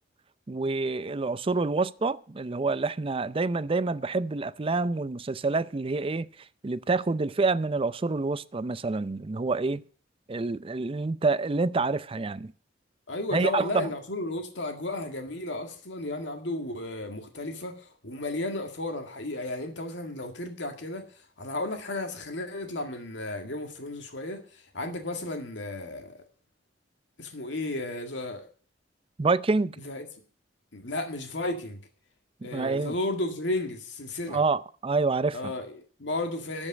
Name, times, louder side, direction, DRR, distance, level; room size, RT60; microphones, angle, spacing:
voice 1, 0.5-6.3 6.6-9.8 10.3-12.5 13.3-13.9 29.2-29.8 32.5-32.9 34.3-35.5, right 3 dB, 30° right, 0.5 m, -27 dB
voice 2, 13.1-21.0 21.4-26.2 27.2-28.5 29.8-30.1 30.7-31.8 32.4-34.4 35.3-36.7, left 2 dB, 70° left, 2.0 m, -33 dB
13.0 x 5.4 x 8.7 m
head